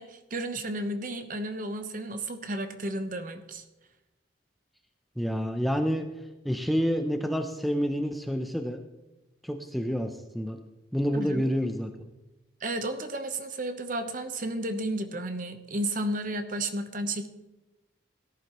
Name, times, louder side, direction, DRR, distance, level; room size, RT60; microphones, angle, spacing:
voice 1, 0.0-3.6 11.1-11.4 12.6-17.3, right 1 dB, 45° right, 8 dB, 1.0 m, -33 dB
voice 2, 5.2-6.1 6.4-8.8 9.4-10.6 10.9-12.1, equal, ahead, 5 dB, 0.6 m, -28 dB
17.0 x 11.0 x 3.1 m, 1.0 s
head